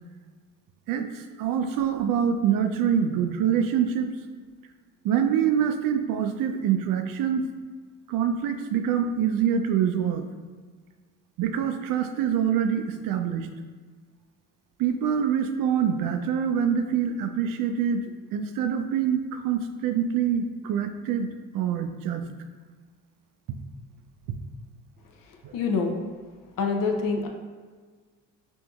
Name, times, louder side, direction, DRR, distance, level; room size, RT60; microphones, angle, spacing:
voice 1, 0.9-4.1 5.0-7.5 8.1-10.3 11.4-13.5 14.8-18.0 18.3-21.3 21.5-22.2 25.4-25.5, right 8 dB, 45° right, 7 dB, 0.4 m, -25 dB
voice 2, 25.5-26.0 26.6-27.3, left 4 dB, 45° left, 3 dB, 0.6 m, -25 dB
4.4 x 2.6 x 2.3 m, 1.5 s
hypercardioid pair, 55°, 47 cm